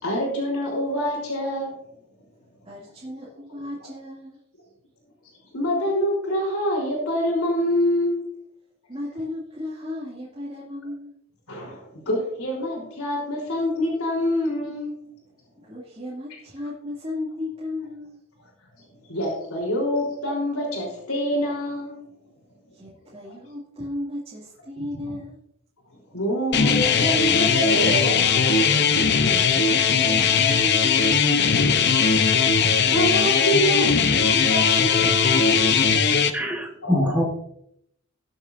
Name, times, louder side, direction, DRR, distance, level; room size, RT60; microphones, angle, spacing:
voice 1, 0.0-1.8 5.5-8.2 11.5-15.0 18.8-22.0 25.0-25.1 26.1-28.9 30.8-30.9 32.8-35.8 36.8-37.3, equal, 90° left, -3 dB, 3.7 m, -26 dB
voice 2, 2.6-4.4 8.9-11.2 15.6-18.2 22.7-25.4 29.5-32.0, left 1 dB, 25° right, -8 dB, 2.4 m, -35 dB
sound 1, 26.5-36.3, left 6 dB, 50° left, 0.8 m, -19 dB
voice 3, 36.3-37.2, left 1 dB, 5° right, 1 dB, 1.5 m, -24 dB
20.0 x 7.2 x 2.6 m, 0.72 s
head